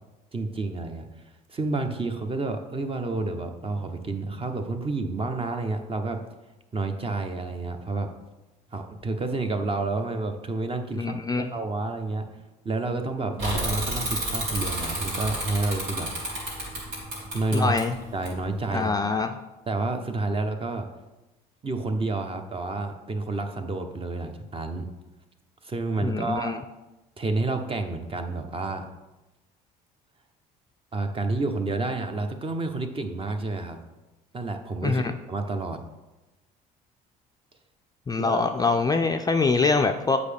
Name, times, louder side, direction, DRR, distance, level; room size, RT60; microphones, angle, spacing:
voice 1, 0.3-1.1 1.5-6.2 6.7-8.1 8.7-12.3 12.6-16.1 17.3-17.8 18.1-18.9 19.7-20.9 21.6-24.9 25.6-26.5 27.2-28.8 30.9-33.8 34.3-35.0 35.3-35.8 38.2-38.4, right 3 dB, 30° right, 6 dB, 0.9 m, -29 dB
voice 2, 10.9-11.5 17.5-18.0 18.7-19.3 26.0-26.6 34.8-35.1 38.1-40.2, left 4 dB, 20° left, 6 dB, 0.4 m, -24 dB
Bicycle / Mechanisms, 13.4-18.8, right 1 dB, 80° right, 2.3 m, -31 dB
8.1 x 4.9 x 3.4 m, 1.1 s
hypercardioid pair, 65°, 19 cm